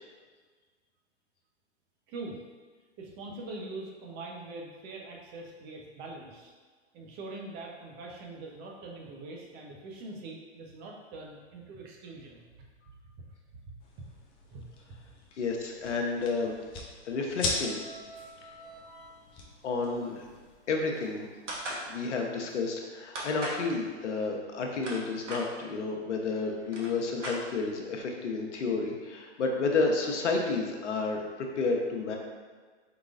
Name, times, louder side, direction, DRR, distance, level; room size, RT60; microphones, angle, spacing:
voice 1, 3.0-6.5 6.9-12.7 13.6-14.1 14.5-14.6, right 2 dB, 30° right, -1 dB, 0.8 m, -43 dB
sound 1, 13.8-20.5, left 3 dB, 15° left, 0.4 m, -40 dB
voice 2, 15.4-16.7 17.0-17.8 19.6-20.3 20.7-21.3 21.8-32.2, left 3 dB, 75° left, 1 dB, 0.9 m, -31 dB
sound 2, 17.4-21.3 21.6-22.1 22.5-22.6, right 1 dB, 30° left, 1.1 m, -51 dB
sound 3, 21.5-21.8 23.1-23.6 24.5-25.4 26.3-26.4 26.6-27.8, right 1 dB, 90° right, 1.3 m, -37 dB
4.8 x 3.9 x 2.5 m, 1.5 s
hypercardioid pair, 125°, 35 cm